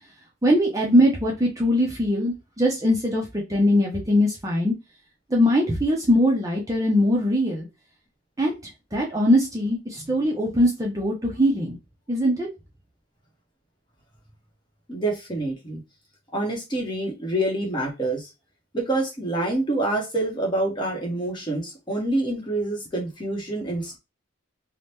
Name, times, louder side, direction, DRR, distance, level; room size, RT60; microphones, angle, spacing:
voice 1, 0.4-4.7 5.3-7.7 8.4-8.5 8.9-11.8 12.1-12.5, equal, 15° right, 0.5 m, -21 dB
voice 2, 14.9-15.8 16.3-18.3 18.7-24.0, right 2 dB, 20° left, 0.8 m, -27 dB
2.8 x 2.1 x 3.2 m
head